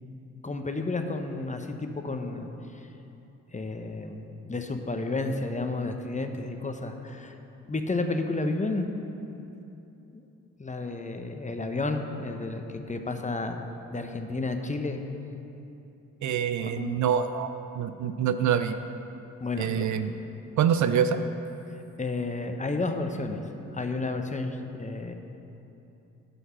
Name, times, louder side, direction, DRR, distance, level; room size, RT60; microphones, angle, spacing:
voice 1, 0.4-2.9 3.5-7.4 7.7-8.9 10.1-10.2 10.6-13.6 13.9-15.0 16.6-17.0 19.4-19.9 21.7-23.4 23.7-25.1, left 3 dB, 20° left, 5 dB, 0.9 m, -31 dB
voice 2, 16.2-17.5 17.7-18.7 19.6-20.1 20.6-21.2, right 8 dB, 55° right, 10 dB, 0.5 m, -25 dB
11.0 x 5.4 x 6.0 m, 2.9 s
hypercardioid pair, 40°, 36 cm